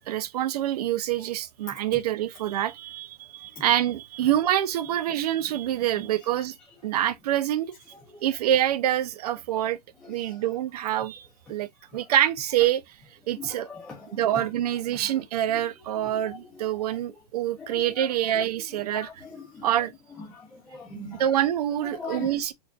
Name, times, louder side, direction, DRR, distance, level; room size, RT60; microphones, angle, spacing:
voice 1, 0.1-6.5 6.8-7.7 8.2-9.8 10.1-12.8 13.3-13.7 14.1-19.1 19.6-19.9 21.2-22.5, right 12 dB, 70° right, 0.5 m, -26 dB
voice 2, 13.4-14.0 14.3-14.4 16.0-16.2 17.6-17.8 18.9-19.1 19.5-19.7 20.3-21.2 21.9-22.3, left 3 dB, 5° left, 0.4 m, -40 dB
4.5 x 2.5 x 2.3 m
supercardioid pair, 170°, 21 cm